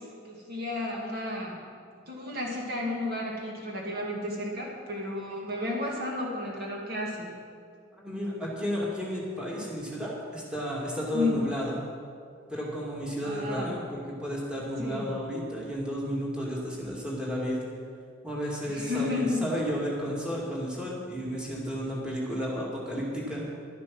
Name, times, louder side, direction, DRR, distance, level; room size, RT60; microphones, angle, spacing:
voice 1, 0.0-1.6 2.1-7.4 11.1-11.4 13.2-13.8 14.8-15.1 18.7-19.5, left 2 dB, 50° right, -2 dB, 2.0 m, -32 dB
voice 2, 7.9-11.8 12.5-17.6 18.2-23.4, equal, 5° right, -5 dB, 2.3 m, -32 dB
11.5 x 11.5 x 6.1 m, 2.2 s
head